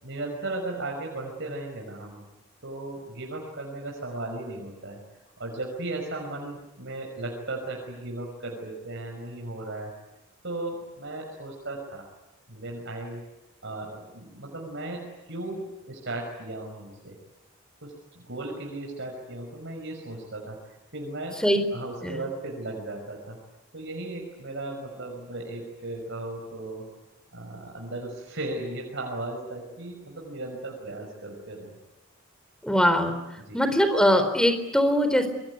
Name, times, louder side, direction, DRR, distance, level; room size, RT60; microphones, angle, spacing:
voice 1, 0.0-2.3 2.6-5.0 5.4-9.9 10.4-12.1 12.5-13.3 13.6-17.2 17.8-21.4 21.7-23.4 23.7-26.8 27.3-31.7 33.4-33.6, right 2 dB, 60° right, 1 dB, 5.8 m, -36 dB
voice 2, 32.6-33.2 33.5-35.3, equal, 5° left, 8 dB, 4.0 m, -21 dB
27.0 x 23.0 x 9.6 m, 1.0 s
head